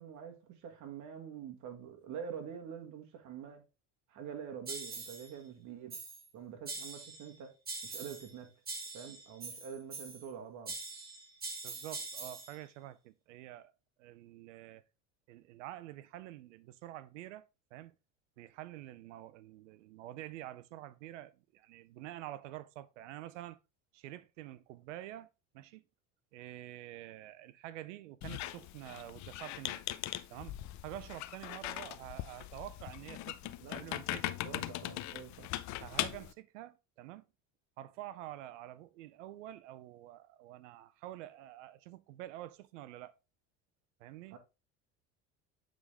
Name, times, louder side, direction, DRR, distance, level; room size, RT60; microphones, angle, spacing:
voice 1, 0.0-3.6 4.1-6.0 6.3-8.5 8.9-10.8 33.6-33.8 34.4-35.5 44.3-44.4, right 7 dB, 55° right, 1.7 m, -46 dB
sound 1, 4.7-5.3 5.9-6.3 6.7-7.3 7.7-8.3 8.7-10.3 10.7-12.6, right 3 dB, 25° right, 1.7 m, -43 dB
voice 2, 11.6-13.7 14.0-14.8 15.3-17.5 17.7-17.9 18.4-23.6 23.9-25.3 25.5-25.8 26.3-29.8 30.3-30.6 30.8-34.3 35.8-37.3 37.8-43.1 44.0-44.4, right 14 dB, 90° right, 0.6 m, -48 dB
Squeak, 28.2-36.3, left 14 dB, 50° left, 0.6 m, -40 dB
8.0 x 3.8 x 3.3 m
supercardioid pair, 95°, 35 cm